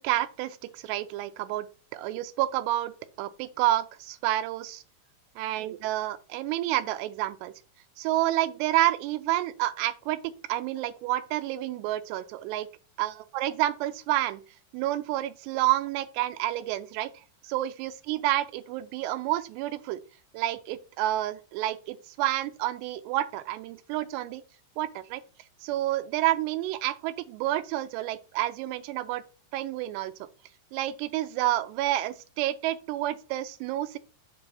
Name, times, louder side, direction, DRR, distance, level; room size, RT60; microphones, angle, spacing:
voice 1, 0.0-1.7 1.9-4.8 5.4-7.5 8.0-12.7 13.0-14.4 14.7-20.0 20.3-24.4 24.8-25.2 25.6-29.2 29.5-30.1 30.7-34.0, right 15 dB, 90° right, 2.7 m, -29 dB
8.2 x 3.0 x 5.4 m
omnidirectional pair, 4.8 m